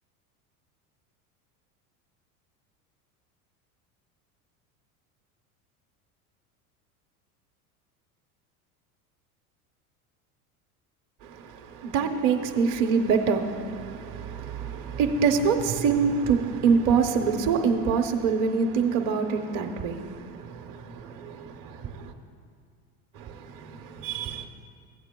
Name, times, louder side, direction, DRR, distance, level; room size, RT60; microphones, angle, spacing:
voice 1, 11.2-22.1 23.1-24.5, right 5 dB, 45° right, 0.9 m, -26 dB
15.5 x 8.5 x 2.2 m
hypercardioid pair, 85°, 44 cm